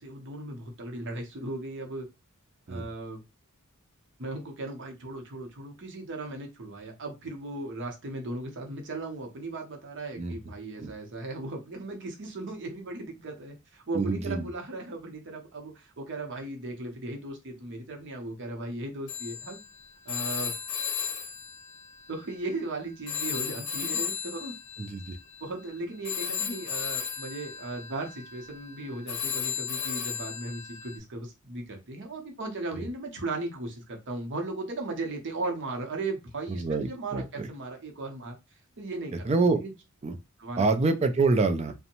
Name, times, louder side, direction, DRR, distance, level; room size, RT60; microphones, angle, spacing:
voice 1, 0.0-2.1 2.7-3.2 4.2-19.6 20.0-20.5 22.1-24.5 25.4-38.4 38.8-39.3 39.6-39.7 40.4-40.7, right 2 dB, 55° right, 0.7 m, -37 dB
voice 2, 13.9-14.5 24.8-25.2 32.7-32.9 36.5-37.5 39.2-39.6 40.0-40.2 40.6-41.7, right 3 dB, 30° right, 0.3 m, -26 dB
Telephone, 19.1-22.7 23.1-31.0, left 7 dB, 75° left, 0.8 m, -35 dB
2.6 x 2.1 x 2.8 m
head